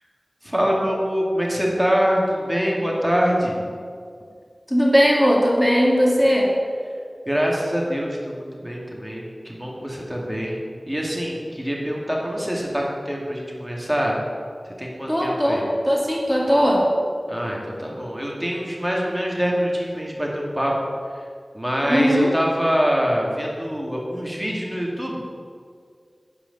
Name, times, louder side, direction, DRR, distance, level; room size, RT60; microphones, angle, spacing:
voice 1, 0.4-3.6 7.3-14.2 14.8-15.6 17.3-20.7 21.5-25.2, equal, 10° right, -2 dB, 2.2 m, -24 dB
voice 2, 4.7-6.5 15.1-16.8 21.9-22.3, equal, 10° left, -2 dB, 2.1 m, -18 dB
10.0 x 4.9 x 6.7 m, 2.1 s
wide cardioid pair, 50°, 0 cm